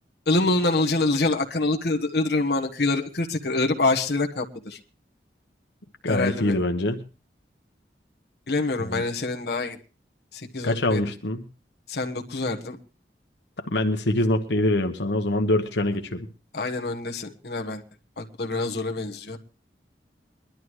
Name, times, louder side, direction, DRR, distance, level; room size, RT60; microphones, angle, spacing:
voice 1, 0.3-4.8 6.1-6.6 8.5-9.8 10.3-11.0 11.9-12.8 16.5-17.8 18.2-19.4, left 2 dB, 65° left, 4 dB, 1.3 m, -26 dB
voice 2, 6.0-7.0 8.8-9.0 10.6-11.4 13.6-16.3, left 1 dB, 90° left, 4 dB, 1.1 m, -24 dB
22.0 x 12.0 x 3.1 m, 0.34 s
head